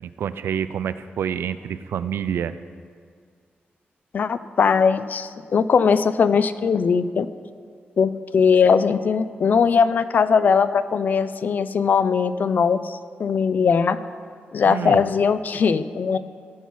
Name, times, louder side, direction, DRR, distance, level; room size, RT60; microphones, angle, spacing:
voice 1, 0.0-2.5 14.7-15.0, right 8 dB, 85° right, 13 dB, 0.4 m, -27 dB
voice 2, 4.1-7.3 8.0-14.0 14.5-16.2, left 6 dB, 50° left, 13 dB, 0.4 m, -20 dB
15.5 x 5.5 x 4.7 m, 2.1 s
wide cardioid pair, 155°, 4 cm